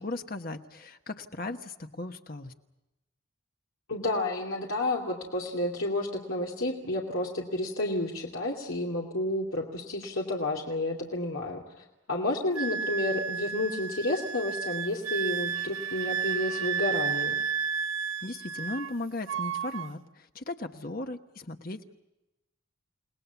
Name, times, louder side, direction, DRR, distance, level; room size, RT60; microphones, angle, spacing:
voice 1, 0.0-2.5 18.2-21.9, left 2 dB, 45° left, 6 dB, 1.1 m, -37 dB
voice 2, 3.9-17.4, left 2 dB, 85° left, -2 dB, 2.7 m, -31 dB
Wind instrument woodwind instrument, 12.6-19.0 19.3-19.9, right 7 dB, 90° right, 1.0 m, -32 dB
30.0 x 19.0 x 7.0 m, 0.99 s
head